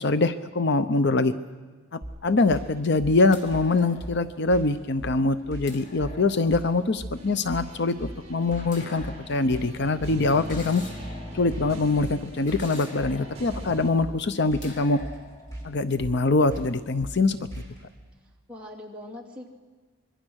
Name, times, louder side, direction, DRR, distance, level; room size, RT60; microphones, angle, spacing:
voice 1, 0.0-1.3 1.9-10.8 11.3-15.0 15.6-17.4, left 3 dB, 60° left, 12 dB, 0.7 m, -24 dB
sound 1, 2.0-17.9, right 1 dB, 15° left, 5.9 m, -40 dB
sound 2, 2.8-16.9 17.2-17.7, left 2 dB, 40° left, 2.9 m, -48 dB
sound 3, 7.2-13.9, equal, 30° right, 4.1 m, -42 dB
voice 2, 18.2-19.5, left 1 dB, 5° right, -2 dB, 2.9 m, -42 dB
25.5 x 22.5 x 6.4 m, 1.4 s
head